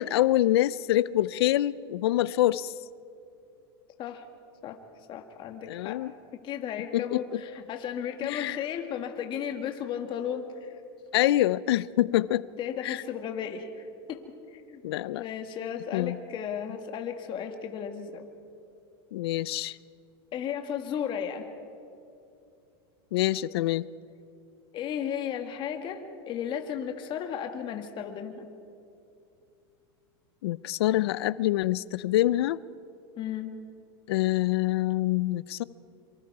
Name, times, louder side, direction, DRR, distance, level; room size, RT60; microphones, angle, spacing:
voice 1, 0.0-2.7 5.7-6.1 6.9-7.4 8.2-8.6 11.1-12.5 12.8-13.0 14.8-15.2 15.9-16.2 19.1-19.8 23.1-23.9 30.4-32.6 34.1-35.6, left 15 dB, 80° left, 19 dB, 0.5 m, -26 dB
voice 2, 5.1-6.0 6.4-10.8 12.6-14.8 15.2-18.2 20.3-21.5 24.7-28.5 33.2-33.5, left 8 dB, 40° left, 5 dB, 1.8 m, -34 dB
26.0 x 24.5 x 4.8 m, 2.6 s
supercardioid pair, 135°, 13 cm